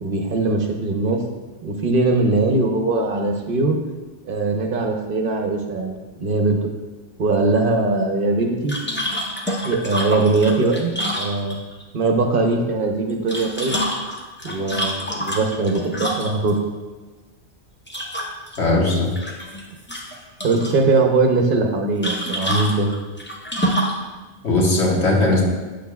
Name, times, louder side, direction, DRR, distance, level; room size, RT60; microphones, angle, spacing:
voice 1, 0.0-1.2 1.6-3.8 4.3-6.7 7.2-8.7 9.6-10.9 11.2-11.6 11.9-13.7 14.4-16.6 20.4-22.9, right 3 dB, 55° right, 3 dB, 0.9 m, -21 dB
sound 1, 8.7-11.8 13.1-16.5 17.9-18.6 18.9-19.6 19.9-20.8 22.0-24.0, equal, 10° left, 0.7 m, -27 dB
voice 2, 18.6-19.1 24.4-25.4, left 2 dB, 80° left, -3 dB, 1.6 m, -18 dB
8.2 x 6.4 x 2.3 m, 1.3 s
omnidirectional pair, 1.1 m